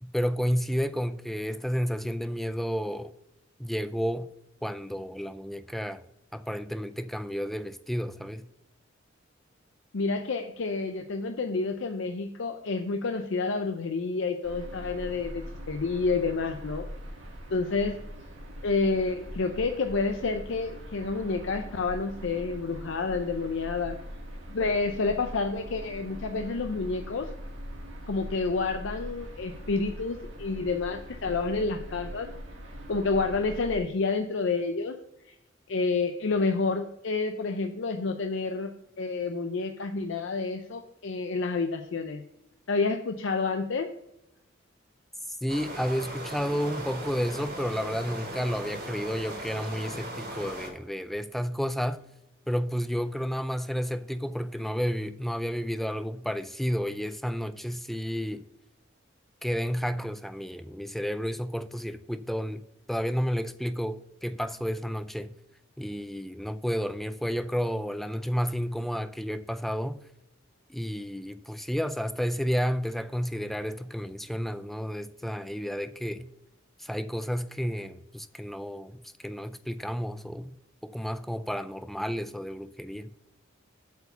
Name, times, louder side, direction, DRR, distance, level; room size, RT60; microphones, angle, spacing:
voice 1, 0.0-3.1 3.6-4.3 4.6-6.0 6.3-8.5 45.3-52.0 52.5-58.4 59.4-62.6 62.9-65.3 65.8-70.0 70.7-76.3 76.8-80.5 80.8-83.1, equal, ahead, 0.3 m, -31 dB
voice 2, 9.9-16.9 17.5-18.0 18.6-24.0 24.5-27.3 28.1-32.3 32.9-35.0 35.7-42.2 42.7-43.9, left 4 dB, 65° left, 0.6 m, -29 dB
sound 1, 14.4-33.8, equal, 70° right, 1.6 m, -42 dB
sound 2, 45.5-50.7, right 1 dB, 55° right, 3.9 m, -38 dB
8.1 x 4.7 x 6.7 m
head